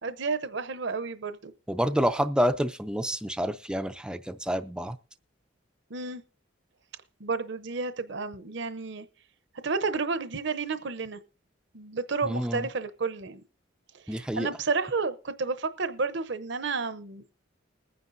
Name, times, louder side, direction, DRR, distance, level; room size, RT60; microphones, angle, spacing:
voice 1, 0.0-1.5 5.9-6.2 7.2-9.1 9.6-11.2 11.7-13.4 14.1-17.3, right 4 dB, 60° right, 0.7 m, -31 dB
voice 2, 1.7-5.0 12.2-12.7 14.1-14.5, equal, 5° right, 0.4 m, -28 dB
21.0 x 9.5 x 2.6 m
head